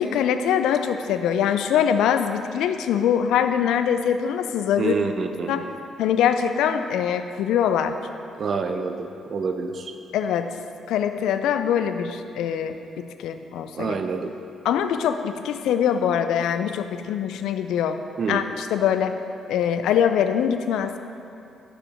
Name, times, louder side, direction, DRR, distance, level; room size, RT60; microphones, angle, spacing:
voice 1, 0.0-4.9 5.5-5.6 6.0-7.9 10.1-10.5 10.9-13.9 14.6-18.0 18.3-19.2 19.5-21.0, left 8 dB, 70° left, 9 dB, 0.3 m, -23 dB
voice 2, 4.8-5.7 8.4-9.9 13.8-14.3 18.2-18.5, right 4 dB, 50° right, 6 dB, 0.5 m, -27 dB
6.7 x 5.1 x 4.8 m, 2.6 s
hypercardioid pair, 45°, 0 cm